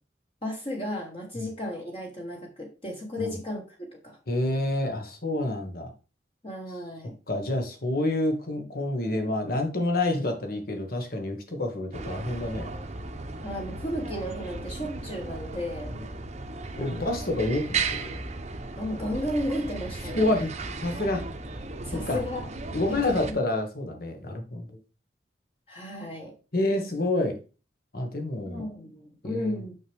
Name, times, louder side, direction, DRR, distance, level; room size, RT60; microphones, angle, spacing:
voice 1, 0.4-4.2 6.4-7.1 13.4-15.9 16.8-17.3 18.8-20.4 21.8-22.5 22.9-23.4 25.7-26.3 28.5-29.7, left 1 dB, 30° left, -1 dB, 1.5 m, -34 dB
voice 2, 4.3-5.9 7.3-12.7 15.9-16.1 16.8-18.2 20.2-20.5 20.8-21.2 21.9-22.2 22.7-24.7 26.5-27.4 27.9-28.6 29.2-29.6, left 1 dB, 55° left, 4 dB, 1.6 m, -28 dB
sound 1, 11.9-23.3, right 3 dB, 40° right, 0.9 m, -36 dB
6.3 x 6.3 x 3.5 m, 0.33 s
head